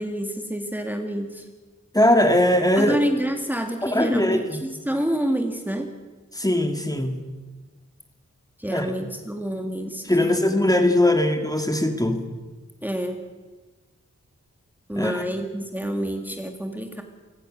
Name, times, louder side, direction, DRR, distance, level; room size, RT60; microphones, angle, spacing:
voice 1, 0.0-1.4 2.8-5.9 8.6-10.5 12.8-13.2 14.9-17.0, right 1 dB, 5° right, 4 dB, 2.0 m, -28 dB
voice 2, 1.9-3.0 3.8-4.6 6.4-7.2 8.7-8.9 10.1-12.3 15.0-15.2, left 1 dB, 10° left, 5 dB, 2.3 m, -20 dB
29.0 x 16.5 x 6.5 m, 1.3 s
wide cardioid pair, 90°, 29 cm